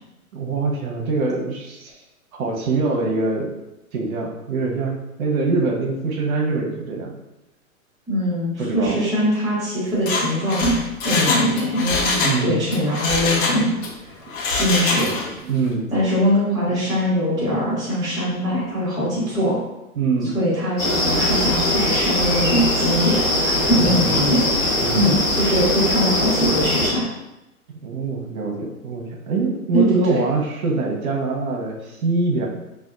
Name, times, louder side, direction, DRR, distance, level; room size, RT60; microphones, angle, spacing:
voice 1, 0.3-1.9 2.3-3.5 3.9-7.1 8.6-9.0 12.2-12.6 15.4-15.9 16.7-16.8 20.0-20.3 23.7-24.4 24.8-25.1 27.8-32.5, right 3 dB, 75° right, 0 dB, 0.8 m, -24 dB
voice 2, 8.1-10.8 11.0-13.7 14.5-15.1 15.9-19.6 20.3-27.1 29.7-30.2, equal, 10° right, -10 dB, 0.9 m, -22 dB
Mechanisms, 9.9-12.4 12.7-13.9 14.3-15.4 15.7-15.8, left 3 dB, 65° left, 0.8 m, -23 dB
sound 1, 20.8-26.9, left 1 dB, 15° left, 1.2 m, -21 dB
3.5 x 2.2 x 2.4 m, 0.94 s
hypercardioid pair, 140°, 43 cm